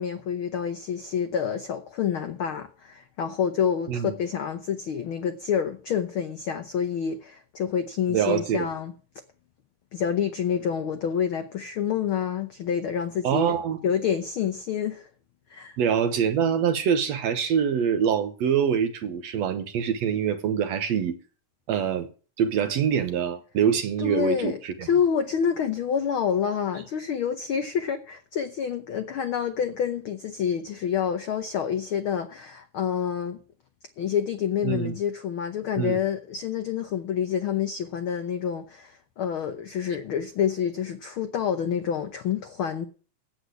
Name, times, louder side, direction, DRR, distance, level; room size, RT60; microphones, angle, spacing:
voice 1, 0.0-8.9 9.9-15.1 15.5-15.8 24.0-33.4 34.0-42.8, left 8 dB, 80° left, 1.1 m, -28 dB
voice 2, 8.1-8.7 13.2-13.8 15.8-21.2 21.7-22.1 22.4-24.9 34.6-35.0 35.8-36.0, right 8 dB, 65° right, 1.9 m, -25 dB
8.3 x 8.2 x 8.1 m
omnidirectional pair, 3.6 m